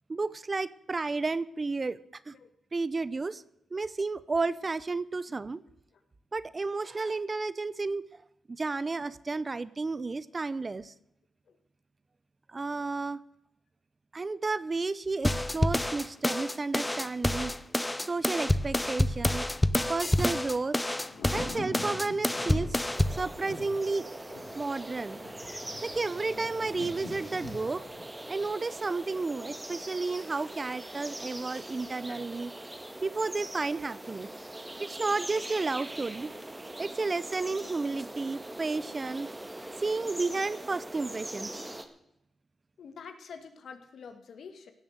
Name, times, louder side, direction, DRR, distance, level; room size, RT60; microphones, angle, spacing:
voice 1, 0.1-2.0 2.3-2.4 2.7-3.4 3.7-5.6 6.3-8.0 8.5-10.9 12.5-13.2 14.1-17.5 18.0-19.5 19.9-20.8 21.3-22.8 23.1-24.1 24.6-25.2 25.8-27.8 28.3-32.5 33.0-34.3 34.8-36.3 36.8-39.3 39.8-41.5, right 3 dB, 35° right, 18 dB, 0.7 m, -32 dB
sound 1, 15.2-23.2, left 1 dB, 15° left, 0.8 m, -28 dB
Thunder, 18.2-29.2 29.5-29.6, left 2 dB, 85° left, 4.0 m, -46 dB
sound 2, 22.9-41.9, right 1 dB, 15° right, 1.8 m, -42 dB
voice 2, 42.8-44.7, left 6 dB, 70° left, 8 dB, 2.0 m, -48 dB
17.0 x 7.3 x 8.0 m, 0.81 s
cardioid pair, 70°, 0 cm